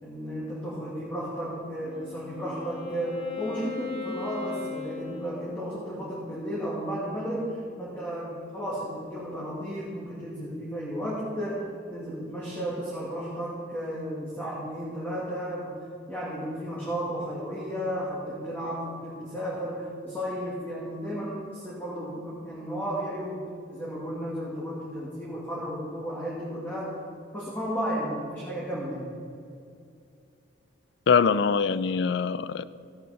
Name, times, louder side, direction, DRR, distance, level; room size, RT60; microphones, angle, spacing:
voice 1, 0.0-15.7 16.1-23.4 23.7-27.0 27.3-29.1, equal, 10° left, 2.0 m, -33 dB
Wind instrument woodwind instrument, 1.6-6.0, left 4 dB, 25° left, 1.7 m, -37 dB
voice 2, 31.1-32.6, left 6 dB, 65° left, 0.4 m, -23 dB
15.5 x 8.4 x 4.2 m
head